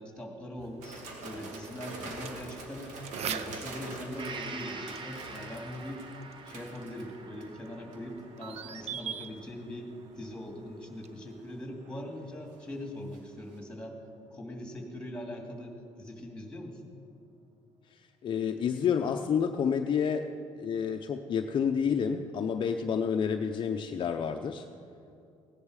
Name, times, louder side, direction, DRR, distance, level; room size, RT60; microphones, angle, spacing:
voice 1, 0.0-2.9 3.3-6.0 6.4-9.9 10.1-13.9 14.3-16.8, left 1 dB, 10° left, 2 dB, 2.3 m, -41 dB
sound 1, 0.6-11.6, right 8 dB, 60° right, 0.7 m, -45 dB
sound 2, 0.8-7.5 7.9-8.2 9.0-9.4 11.6-13.2 13.5-13.6, right 2 dB, 85° right, 2.2 m, -45 dB
Gong, 4.2-11.8 12.2-12.3, right 4 dB, 40° right, 1.3 m, -47 dB
voice 2, 17.9-20.3 20.6-24.7, left 7 dB, 40° left, 5 dB, 0.6 m, -29 dB
16.5 x 10.5 x 4.9 m, 2.7 s
cardioid pair, 120°, 12 cm